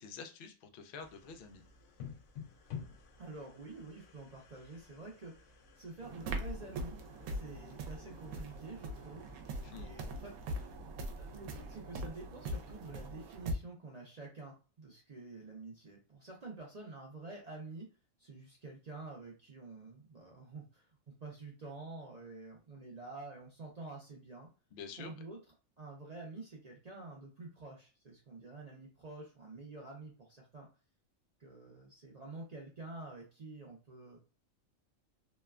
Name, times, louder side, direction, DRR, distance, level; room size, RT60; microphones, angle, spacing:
voice 1, 0.0-1.6 9.6-9.9 24.7-25.2, left 5 dB, 80° left, 6 dB, 0.4 m, -48 dB
sound 1, 1.0-12.1, left 6 dB, 65° left, 0.8 m, -54 dB
voice 2, 3.2-5.3 5.8-7.0 7.3-9.3 9.7-10.3 11.2-17.9 18.2-20.8 21.2-24.5 25.0-25.4 25.8-30.7 31.4-34.2, right 3 dB, 50° right, -2 dB, 0.4 m, -48 dB
sound 2, 6.0-13.5, right 1 dB, 85° right, 1.0 m, -42 dB
3.0 x 2.1 x 2.3 m, 0.33 s
omnidirectional pair, 1.5 m